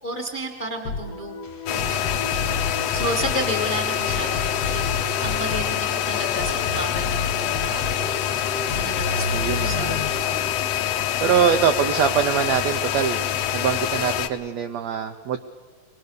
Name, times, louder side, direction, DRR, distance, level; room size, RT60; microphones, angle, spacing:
voice 1, 0.0-1.4 1.7-8.1 8.7-10.5 11.2-11.3, right 1 dB, 20° left, 3 dB, 1.4 m, -32 dB
sound 1, 0.9-10.9, left 3 dB, 55° left, 2.4 m, -32 dB
sound 2, 1.7-14.3, left 11 dB, 75° left, 1.5 m, -25 dB
voice 2, 9.3-10.1 11.2-13.2 13.5-15.4, right 8 dB, 80° right, 6 dB, 1.6 m, -23 dB
23.0 x 20.0 x 6.8 m, 1.4 s
omnidirectional pair, 4.0 m